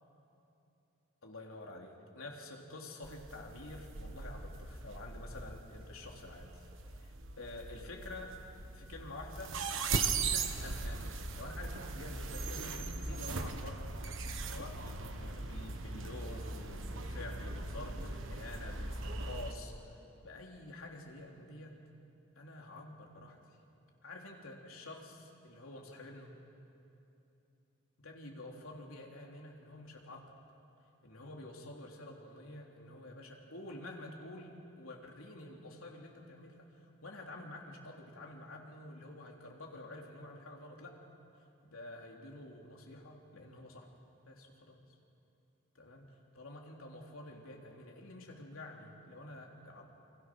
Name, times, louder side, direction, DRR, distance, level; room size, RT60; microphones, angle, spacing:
voice 1, 1.2-6.7 7.0-8.3 8.7-9.6 9.9-13.8 14.4-21.8 22.3-23.4 24.0-26.3 28.0-30.2 31.0-41.1 41.4-43.9 44.2-44.8 45.8-46.0 46.3-49.8, left 2 dB, 80° left, 0 dB, 3.4 m, -49 dB
sound 1, 3.0-19.5, right 4 dB, 70° right, 1.4 m, -39 dB
29.0 x 25.0 x 6.2 m, 2.8 s
head